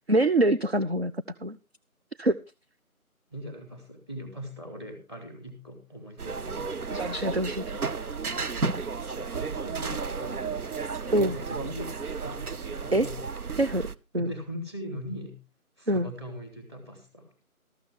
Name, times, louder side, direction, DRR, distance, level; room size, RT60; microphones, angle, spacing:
voice 1, 0.1-1.1 1.4-1.6 2.2-2.4 6.9-7.8 11.1-11.3 12.9-13.1 13.6-13.9 14.1-14.3 15.9-16.1, right 1 dB, 45° right, 11 dB, 0.5 m, -24 dB
voice 2, 3.3-6.9 8.0-8.5 9.0-10.6 10.9-13.2 14.2-15.4 15.8-17.3, equal, 20° right, 5 dB, 2.7 m, -41 dB
sound 1, 6.2-13.9, right 4 dB, 90° right, 0.9 m, -33 dB
13.5 x 13.0 x 3.6 m, 0.29 s
figure-of-eight pair, 165°, 43 cm